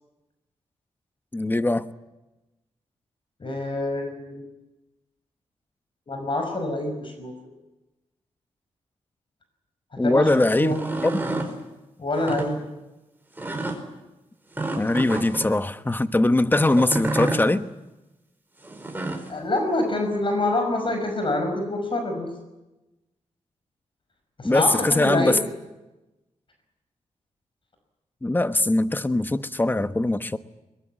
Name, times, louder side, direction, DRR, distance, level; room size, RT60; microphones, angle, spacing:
voice 1, 1.3-1.8 10.0-10.8 14.7-17.7 24.4-25.4 28.2-30.4, left 2 dB, 15° left, 1.2 m, -21 dB
voice 2, 3.4-4.4 6.1-7.3 10.0-10.8 12.0-12.6 19.3-22.3 24.4-25.5, left 2 dB, 45° left, 5.7 m, -26 dB
sound 1, 10.6-11.5 12.1-12.5 13.4-13.8 14.5-15.5 16.7-17.4 18.6-19.3, right 2 dB, 15° right, 5.1 m, -29 dB
22.5 x 21.5 x 9.4 m
cardioid pair, 80°, 12 cm